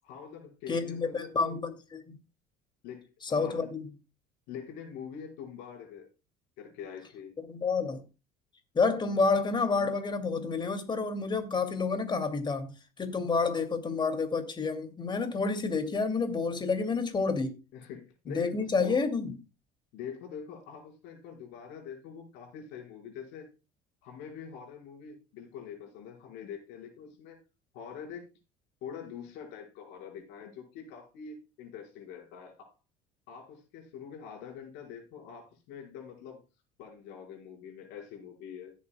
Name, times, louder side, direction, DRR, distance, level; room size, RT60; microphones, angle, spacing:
voice 1, 0.0-1.6 2.8-3.7 4.5-6.1 6.6-7.4 17.7-19.0 19.9-23.5 24.0-27.4 27.7-28.3 28.8-32.7 33.3-36.4 36.8-38.7, left 7 dB, 75° left, 5.0 m, -44 dB
voice 2, 0.7-2.2 3.2-3.8 7.4-8.0 8.7-17.6 18.3-19.4, left 4 dB, 25° left, 2.5 m, -29 dB
17.0 x 8.5 x 2.3 m
supercardioid pair, 105°, 18 cm